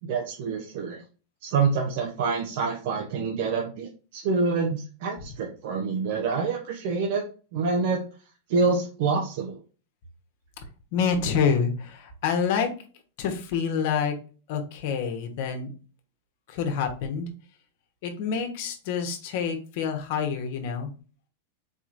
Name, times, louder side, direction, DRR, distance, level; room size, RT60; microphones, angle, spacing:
voice 1, 0.1-1.0 1.4-7.2 7.5-8.0 8.5-9.6, right 4 dB, 60° right, 1 dB, 0.8 m, -26 dB
voice 2, 10.9-12.7 13.2-14.1 14.5-15.7 16.5-17.3 18.0-20.9, left 6 dB, 60° left, 6 dB, 1.0 m, -27 dB
4.2 x 3.0 x 2.6 m, 0.36 s
hypercardioid pair, 130°, 0 cm